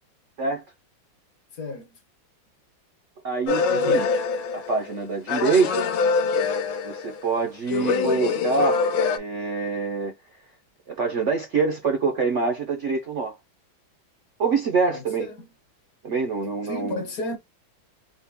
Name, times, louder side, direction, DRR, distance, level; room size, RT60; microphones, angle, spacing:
voice 1, 1.5-2.0 3.7-4.1 14.9-15.5 16.6-17.4, left 2 dB, 60° left, 1.0 m, -33 dB
voice 2, 3.2-4.1 4.5-5.9 6.8-8.8 9.1-10.1 10.9-13.4 14.4-15.3 16.0-17.0, right 4 dB, 90° right, 0.6 m, -25 dB
sound 1, 3.5-5.0 5.3-7.3 7.7-9.2, left 4 dB, 80° left, 1.4 m, -24 dB
4.3 x 2.1 x 3.3 m
omnidirectional pair, 2.2 m